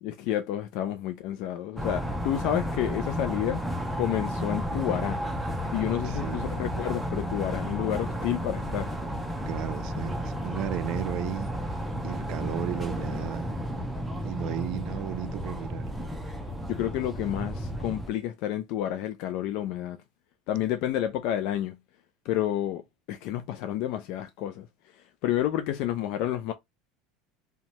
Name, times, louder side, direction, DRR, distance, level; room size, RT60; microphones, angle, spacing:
voice 1, 0.0-3.6 3.9-5.2 5.7-8.9 16.7-20.0 20.5-21.8 22.2-24.7 24.9-26.5, left 12 dB, 60° left, 0.3 m, -30 dB
sound 1, 1.8-18.1, equal, 5° right, 0.6 m, -32 dB
voice 2, 6.0-6.5 9.5-11.5 12.0-13.5 14.2-15.9, right 12 dB, 55° right, 0.4 m, -34 dB
2.7 x 2.1 x 2.9 m
supercardioid pair, 120°, 0 cm